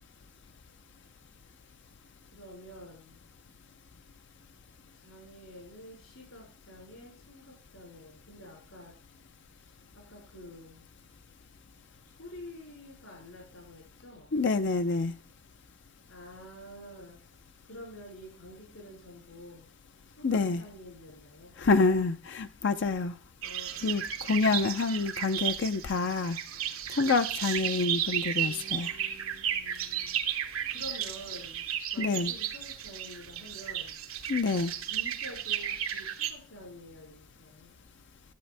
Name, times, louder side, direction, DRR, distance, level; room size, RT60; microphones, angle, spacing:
voice 1, 2.3-3.2 4.9-8.9 9.5-10.9 12.0-14.4 16.1-17.2 17.6-19.7 20.1-21.5 23.4-24.6 28.3-34.0 34.8-37.8, equal, 75° left, 5.1 m, -49 dB
voice 2, 14.3-15.1 20.2-20.6 21.6-23.1 23.8-26.4 26.9-28.9 32.0-32.3 34.3-34.7, left 4 dB, 60° left, 0.5 m, -27 dB
sound 1, 23.4-36.3, right 10 dB, 90° right, 1.3 m, -34 dB
11.5 x 8.2 x 3.4 m
head